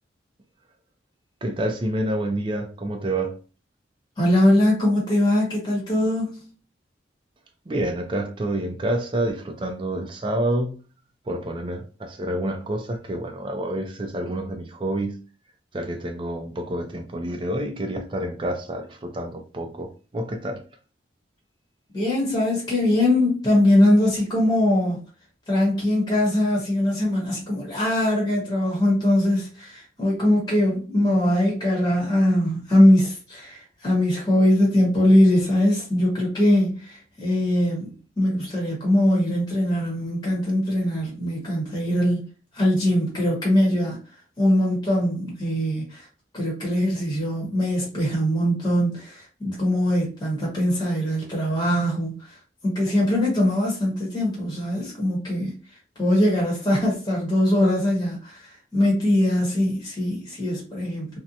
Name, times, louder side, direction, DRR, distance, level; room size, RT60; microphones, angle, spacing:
voice 1, 1.4-3.4 7.7-10.8 11.3-15.2 15.7-20.6, right 1 dB, 25° right, 0.4 m, -28 dB
voice 2, 4.2-6.5 21.9-25.0 25.5-42.3 42.5-44.0 44.4-46.1 46.3-52.4 52.6-55.5 56.0-61.2, left 1 dB, 20° left, 0.9 m, -21 dB
2.6 x 2.1 x 2.7 m
head